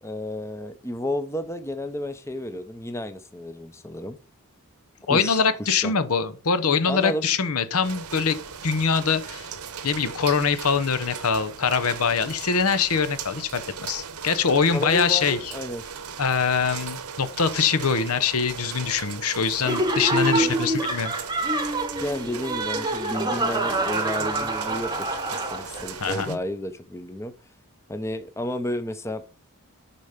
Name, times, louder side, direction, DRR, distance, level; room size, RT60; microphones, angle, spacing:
voice 1, 0.0-4.2 5.1-5.4 5.7-5.9 6.8-7.3 14.7-15.8 20.3-20.7 22.0-27.3 27.9-29.2, left 1 dB, 10° left, 0.6 m, -32 dB
voice 2, 5.1-8.4 8.6-9.5 9.8-15.5 16.2-21.1 26.0-26.4, left 5 dB, 80° left, 0.9 m, -23 dB
sound 1, 7.8-26.4, right 6 dB, 85° right, 0.9 m, -38 dB
Laughter, 19.6-26.0, right 2 dB, 20° right, 0.9 m, -26 dB
10.0 x 4.3 x 5.1 m
head